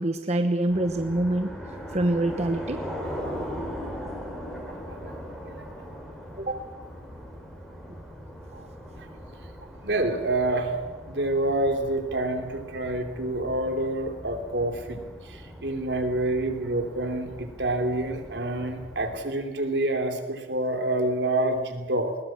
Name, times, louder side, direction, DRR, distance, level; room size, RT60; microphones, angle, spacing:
voice 1, 0.0-1.5 1.9-2.8 6.4-6.7, right 1 dB, 40° right, 6 dB, 1.1 m, -25 dB
sound 1, 0.7-19.2, equal, 5° left, 4.4 m, -40 dB
voice 2, 3.0-3.3 5.1-5.2 8.5-8.6 9.8-10.7 11.1-22.2, right 1 dB, 75° right, 5 dB, 3.0 m, -27 dB
21.0 x 19.5 x 7.6 m, 1.3 s
head